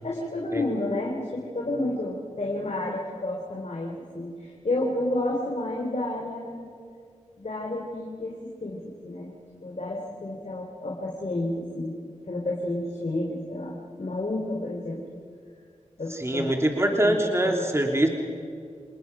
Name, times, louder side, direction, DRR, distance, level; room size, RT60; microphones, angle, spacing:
voice 1, 0.0-6.7 7.4-9.3 9.6-11.9 12.2-15.0 16.0-16.5 16.9-17.2 17.4-17.6, left 1 dB, 60° left, -2 dB, 3.5 m, -31 dB
voice 2, 16.1-18.1, right 1 dB, 20° right, 2 dB, 3.1 m, -23 dB
28.5 x 19.5 x 6.0 m, 2.3 s
cardioid pair, 40°, 13 cm